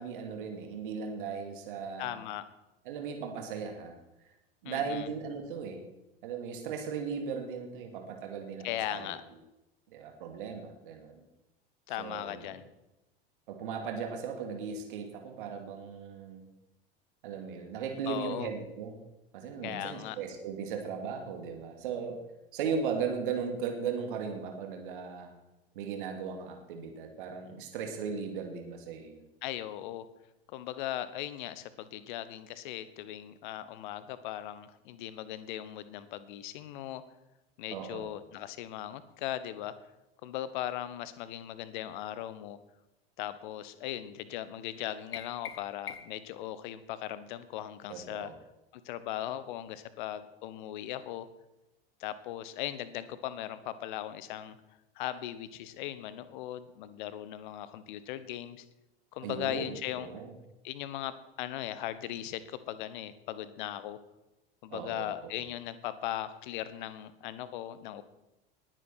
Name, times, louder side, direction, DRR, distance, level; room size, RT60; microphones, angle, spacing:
voice 1, 0.0-2.2 2.9-4.0 4.6-5.8 6.2-9.1 9.9-11.2 12.0-12.5 13.5-16.4 17.2-19.0 19.3-22.2 22.5-25.3 25.7-29.2 37.7-38.1 47.9-48.4 59.2-60.3 64.7-65.3, right 6 dB, 60° right, 4 dB, 2.3 m, -37 dB
voice 2, 2.0-2.4 4.6-5.1 8.6-9.2 11.9-12.6 18.1-18.5 19.6-20.2 29.4-30.1 30.5-37.0 37.6-39.7 40.2-42.6 43.2-48.3 48.7-51.3 52.0-54.6 54.9-58.6 59.1-60.1 60.6-64.0 64.6-68.0, left 12 dB, 55° left, 14 dB, 1.1 m, -38 dB
sound 1, 45.1-46.3, left 7 dB, 75° left, 0.8 m, -43 dB
19.0 x 9.1 x 4.5 m, 0.96 s
figure-of-eight pair, 80°, 30 cm